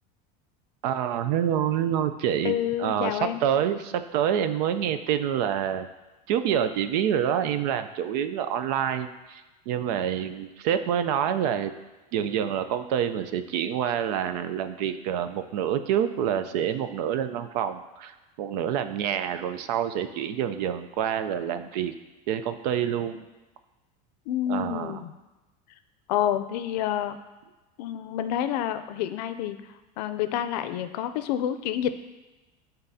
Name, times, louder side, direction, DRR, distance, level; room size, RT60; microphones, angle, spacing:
voice 1, 0.8-5.9 6.3-11.7 12.1-18.1 18.4-21.9 22.3-23.2 24.5-25.0, right 9 dB, 75° right, 10 dB, 0.6 m, -27 dB
voice 2, 2.4-3.4 24.3-25.1 26.1-27.2 27.8-29.6 30.0-32.0, left 10 dB, 85° left, 11 dB, 0.5 m, -28 dB
11.0 x 3.9 x 2.8 m, 1.1 s
supercardioid pair, 145°, 20 cm